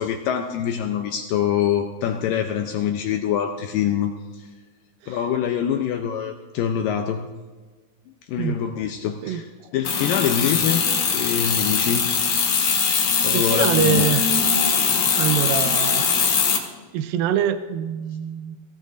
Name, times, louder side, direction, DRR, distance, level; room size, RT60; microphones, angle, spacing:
voice 1, 0.0-4.4 5.1-7.3 8.3-9.4 9.7-10.8 11.1-12.1 13.2-14.1, left 9 dB, 80° left, 5 dB, 2.0 m, -24 dB
sound 1, 9.9-16.6, left 6 dB, 60° left, 2.2 m, -21 dB
voice 2, 13.3-14.3 15.1-16.1 16.9-18.6, right 9 dB, 90° right, 10 dB, 2.1 m, -24 dB
17.0 x 16.5 x 2.6 m, 1.3 s
omnidirectional pair, 4.7 m